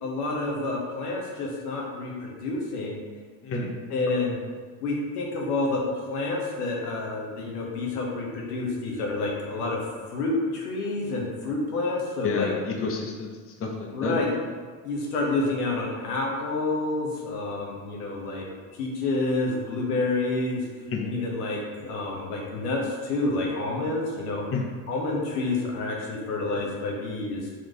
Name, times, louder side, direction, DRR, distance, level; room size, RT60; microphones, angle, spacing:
voice 1, 0.0-3.0 3.5-4.4 4.8-9.8 10.1-12.5 13.9-14.4 14.8-18.5 18.7-20.6 21.0-24.4 24.9-27.5, left 2 dB, 85° left, -1 dB, 1.1 m, -29 dB
voice 2, 3.4-3.8 12.2-14.2 20.9-21.1 24.5-24.7, left 4 dB, 30° left, 1 dB, 0.7 m, -30 dB
4.1 x 3.1 x 3.7 m, 1.5 s
hypercardioid pair, 85°, 45 cm